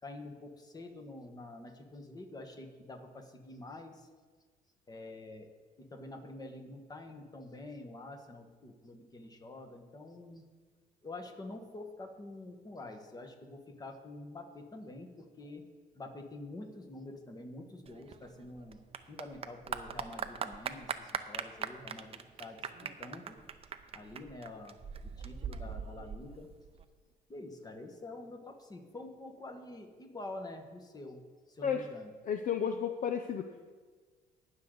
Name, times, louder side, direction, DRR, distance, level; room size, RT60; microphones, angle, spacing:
voice 1, 0.0-4.1 4.9-5.5 5.8-10.5 11.0-15.7 15.9-18.8 19.1-23.4 23.9-26.5 27.3-31.2 31.5-32.1, left 2 dB, 20° left, 5 dB, 1.4 m, -47 dB
Clapping / Applause, 17.9-26.8, right 7 dB, 35° right, 0.6 m, -41 dB
voice 2, 32.2-33.6, left 7 dB, 50° left, 7 dB, 0.6 m, -33 dB
18.0 x 6.5 x 3.9 m, 1.5 s
cardioid pair, 110°, 17 cm